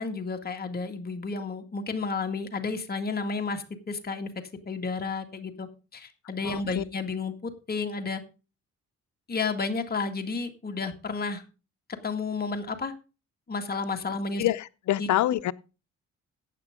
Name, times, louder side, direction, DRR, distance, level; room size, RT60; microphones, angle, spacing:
voice 1, 0.0-4.3 4.7-8.2 9.3-11.4 11.9-12.9 13.5-14.4 15.0-15.1, left 4 dB, 30° left, 2.1 m, -32 dB
voice 2, 6.4-6.8 14.4-15.5, left 13 dB, 70° left, 0.7 m, -26 dB
14.5 x 9.2 x 3.7 m
cardioid pair, 90°, 30 cm